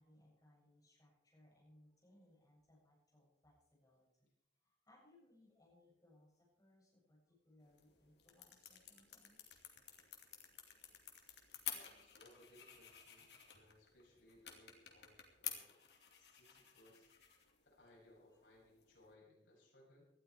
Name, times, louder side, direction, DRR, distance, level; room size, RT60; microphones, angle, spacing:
voice 1, 0.0-4.3 4.6-9.4, left 1 dB, 20° left, -4 dB, 7.4 m, -69 dB
sound 1, 7.6-19.1, left 9 dB, 65° left, 2.5 m, -53 dB
voice 2, 11.7-15.8 16.2-17.1 17.6-20.1, left 1 dB, 80° left, -3 dB, 7.5 m, -66 dB
18.5 x 12.5 x 4.8 m, 0.82 s
head